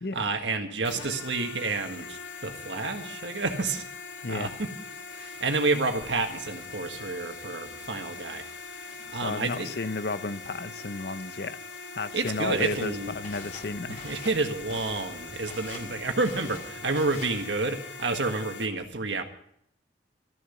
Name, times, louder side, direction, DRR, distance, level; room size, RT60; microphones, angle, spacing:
voice 1, 0.1-3.8 4.3-4.7 5.1-8.4 8.8-9.7 12.1-13.1 14.0-19.2, right 3 dB, 80° right, 1.6 m, -29 dB
sound 1, 0.8-18.7, left 4 dB, 85° left, 1.6 m, -42 dB
voice 2, 9.2-11.6 12.0-14.0, left 3 dB, 60° left, 0.7 m, -33 dB
Walk footsteps, 12.2-17.5, left 3 dB, 40° left, 2.4 m, -45 dB
14.0 x 6.9 x 9.1 m
head